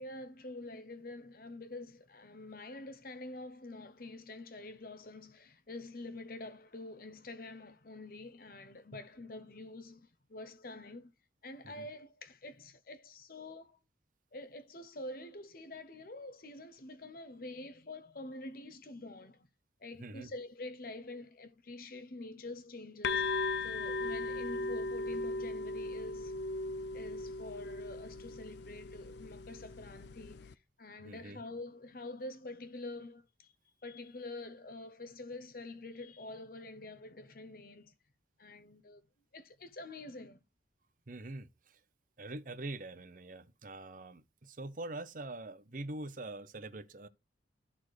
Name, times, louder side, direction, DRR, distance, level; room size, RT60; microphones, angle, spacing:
voice 1, 0.0-11.1 11.4-13.8 14.3-19.5 19.8-26.4 26.9-33.5 33.8-37.9 38.4-39.0 39.3-40.4, left 2 dB, 50° left, 0.9 m, -47 dB
voice 2, 20.0-20.3 31.0-31.4 41.1-41.8 42.2-47.1, right 2 dB, 45° right, 0.7 m, -44 dB
sound 1, 23.0-30.5, left 3 dB, 65° left, 0.5 m, -37 dB
12.5 x 4.3 x 4.7 m
head